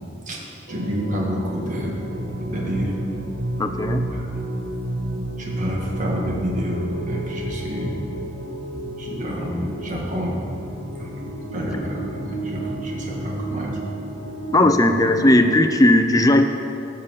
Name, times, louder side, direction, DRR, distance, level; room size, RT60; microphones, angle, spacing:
voice 1, 0.3-1.9 2.4-2.9 4.1-4.2 5.4-7.9 9.0-10.4 11.0-11.1 11.5-13.7, equal, 40° right, -2 dB, 1.7 m, -29 dB
sound 1, 0.7-15.6, right 1 dB, 80° right, 1.5 m, -31 dB
voice 2, 3.6-4.0 14.5-16.5, left 1 dB, 20° left, 6 dB, 0.5 m, -16 dB
13.5 x 5.7 x 7.0 m, 2.8 s
head